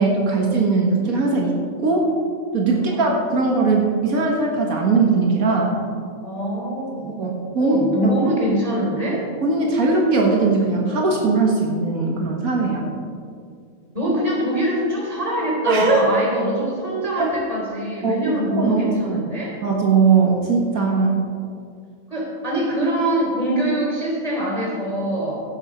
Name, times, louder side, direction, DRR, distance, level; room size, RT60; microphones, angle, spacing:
voice 1, 0.0-1.5 1.8-2.1 2.5-5.7 7.2-8.1 9.4-12.8 15.6-16.0 17.2-17.3 18.0-18.1 18.5-19.3 19.6-21.2, right 4 dB, 85° right, -1 dB, 1.9 m, -19 dB
voice 2, 2.7-3.1 6.2-7.1 7.6-9.2 13.9-19.5 22.1-25.4, right 1 dB, 25° right, -4 dB, 3.8 m, -24 dB
16.5 x 7.3 x 5.1 m, 2.2 s
omnidirectional pair, 1.5 m